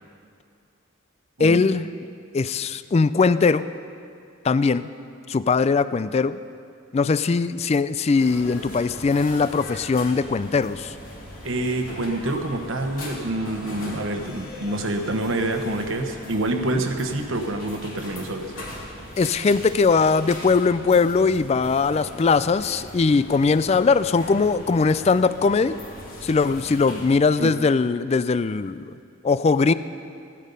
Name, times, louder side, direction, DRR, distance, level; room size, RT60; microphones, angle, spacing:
voice 1, 1.4-1.9 2.3-3.7 4.4-4.9 5.3-6.4 6.9-10.9 19.2-25.8 26.2-28.9 29.2-29.7, left 4 dB, 30° left, 15 dB, 0.3 m, -20 dB
sound 1, 8.1-27.1, left 1 dB, 75° left, 3.1 m, -40 dB
voice 2, 11.4-18.6 27.4-27.5, right 1 dB, 70° right, 5 dB, 1.1 m, -27 dB
16.0 x 12.0 x 5.4 m, 2.4 s
head